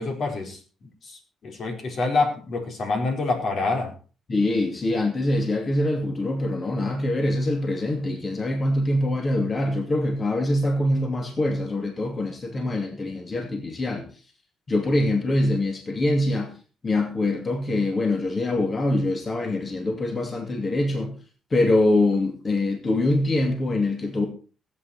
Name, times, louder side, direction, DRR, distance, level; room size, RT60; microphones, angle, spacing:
voice 1, 0.0-3.9, left 3 dB, 55° left, 3 dB, 4.4 m, -27 dB
voice 2, 4.3-14.1 14.7-16.6 16.8-21.2 21.5-24.3, left 1 dB, 35° left, 4 dB, 2.6 m, -24 dB
17.0 x 8.7 x 4.3 m, 0.36 s
cardioid pair, 90°, 0 cm